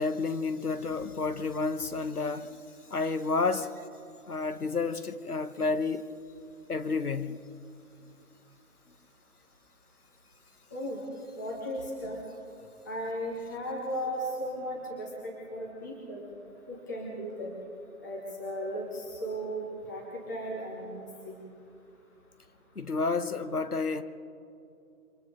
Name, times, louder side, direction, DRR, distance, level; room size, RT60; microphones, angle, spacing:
voice 1, 0.0-2.6 2.9-3.7 4.3-6.0 6.7-7.4 22.8-24.0, left 4 dB, 80° left, 1.3 m, -30 dB
voice 2, 11.4-12.2 12.8-16.2 16.7-17.5 18.0-21.4, equal, 15° left, 1.4 m, -36 dB
28.0 x 25.0 x 3.9 m
figure-of-eight pair, 160°, 45 cm